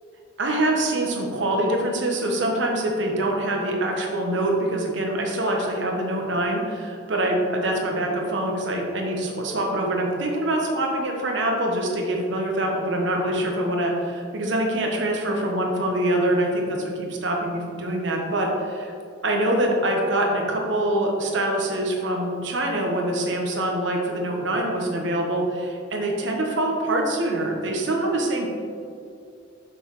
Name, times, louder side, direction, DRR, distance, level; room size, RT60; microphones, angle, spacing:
voice 1, 0.4-18.9 19.2-28.5, right 1 dB, 70° right, 0 dB, 1.0 m, -24 dB
6.5 x 6.1 x 3.1 m, 2.4 s
head